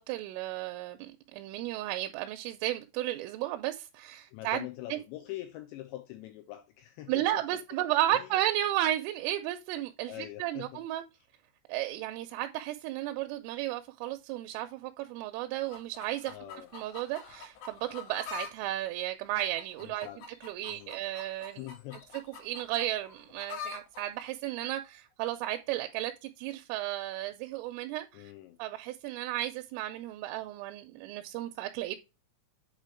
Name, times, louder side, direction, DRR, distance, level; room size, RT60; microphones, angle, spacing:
voice 1, 0.0-5.0 7.1-11.0 11.7-16.3 16.7-20.1 20.4-21.6 22.4-28.3 28.6-32.0, right 14 dB, 85° right, 3.1 m, -34 dB
voice 2, 4.3-7.3 8.1-8.3 10.1-10.8 16.3-16.7 19.8-20.2 20.7-21.0 21.6-22.0 28.1-28.6, left 15 dB, 85° left, 2.5 m, -43 dB
sound 1, 15.6-18.5 18.8-24.0 24.8-24.9, left 6 dB, 70° left, 4.0 m, -45 dB
8.2 x 3.1 x 4.4 m
omnidirectional pair, 5.8 m